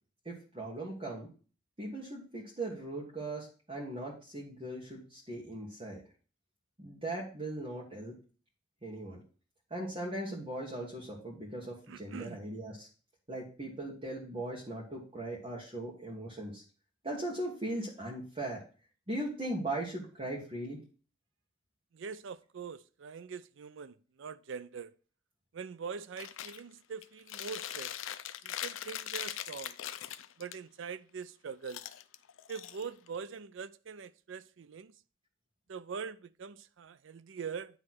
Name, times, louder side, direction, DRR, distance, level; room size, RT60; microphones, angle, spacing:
voice 1, 0.2-1.3 1.8-6.0 6.8-8.2 8.8-9.2 9.7-12.9 13.3-16.6 17.0-18.6 19.1-20.8, right 1 dB, 30° right, 1.5 m, -39 dB
voice 2, 11.9-12.4 21.9-24.9 25.5-28.0 28.4-29.8 30.4-31.9 32.5-34.9 35.7-37.8, right 6 dB, 70° right, 0.4 m, -43 dB
Chewing mastication, 26.2-26.6 27.0-30.6 31.6-33.2, left 11 dB, 80° left, 0.5 m, -41 dB
9.5 x 3.2 x 6.0 m
head